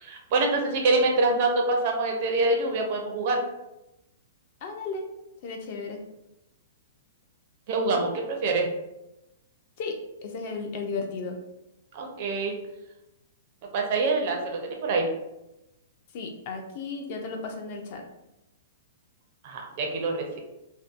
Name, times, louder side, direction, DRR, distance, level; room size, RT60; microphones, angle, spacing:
voice 1, 0.0-3.4 7.7-8.7 11.9-12.5 13.7-15.1 19.4-20.4, right 3 dB, 40° right, 2 dB, 0.4 m, -25 dB
voice 2, 4.6-5.0 5.4-6.0 7.9-8.1 9.8-11.4 16.1-18.0, left 4 dB, 40° left, 3 dB, 0.3 m, -34 dB
2.6 x 2.1 x 2.4 m, 0.92 s
hypercardioid pair, 170°, 0 cm